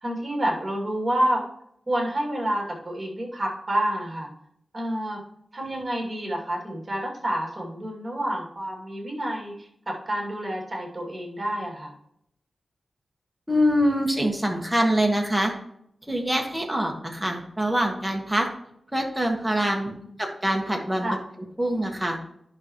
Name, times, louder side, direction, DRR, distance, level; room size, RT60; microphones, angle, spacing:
voice 1, 0.0-1.4 1.9-4.3 4.7-5.2 5.5-11.9 20.0-20.1 21.0-21.2, right 1 dB, 25° right, -1 dB, 2.6 m, -28 dB
voice 2, 13.5-15.5 16.1-18.5 18.9-19.9 20.2-21.1 21.6-22.2, equal, 5° right, 1 dB, 1.5 m, -24 dB
10.5 x 5.7 x 3.1 m, 0.73 s
wide cardioid pair, 110°, 0 cm